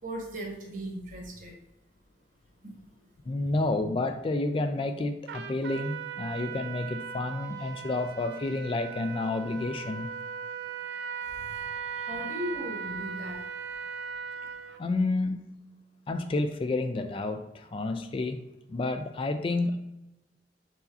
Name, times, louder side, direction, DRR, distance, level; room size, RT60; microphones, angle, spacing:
voice 1, 0.0-1.6 2.6-2.8 11.3-13.4, equal, 50° right, 0 dB, 1.2 m, -38 dB
voice 2, 3.3-10.1 14.8-15.4 16.1-18.4 18.7-19.8, left 2 dB, 30° left, 8 dB, 0.3 m, -30 dB
Trumpet, 5.3-14.8, right 7 dB, 65° right, 0.3 m, -38 dB
4.7 x 4.3 x 2.6 m, 0.92 s
head